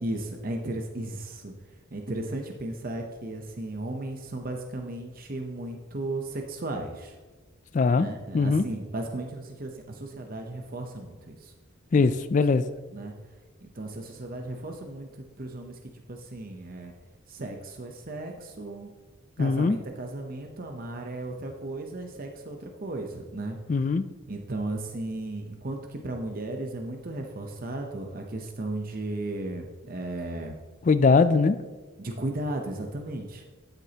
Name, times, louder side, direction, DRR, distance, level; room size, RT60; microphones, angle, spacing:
voice 1, 0.0-1.5 1.9-7.2 8.0-11.5 12.0-12.1 12.9-13.1 13.6-16.9 17.3-18.9 19.4-23.6 24.3-30.6 32.0-33.4, right 2 dB, 45° right, 3 dB, 0.8 m, -35 dB
voice 2, 7.7-8.1 8.3-8.6 11.9-12.7 19.4-19.8 23.7-24.0 30.9-31.6, left 4 dB, 35° left, 12 dB, 0.3 m, -21 dB
12.0 x 8.0 x 2.9 m, 1.3 s
head